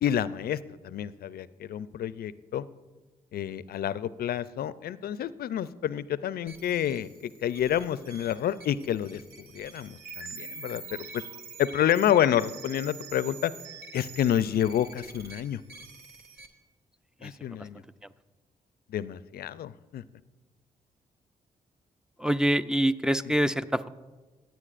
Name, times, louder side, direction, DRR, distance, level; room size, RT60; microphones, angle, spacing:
voice 1, 0.0-2.6 3.3-11.2 11.6-13.5 13.9-15.6 17.2-17.8 18.9-20.0 23.2-23.5, left 10 dB, 65° left, 17 dB, 0.4 m, -29 dB
sound 1, 6.5-16.5, right 5 dB, 70° right, 1.1 m, -45 dB
voice 2, 22.2-23.9, right 1 dB, 5° right, 14 dB, 0.4 m, -25 dB
17.0 x 9.3 x 2.5 m, 1.2 s
hypercardioid pair, 40°, 17 cm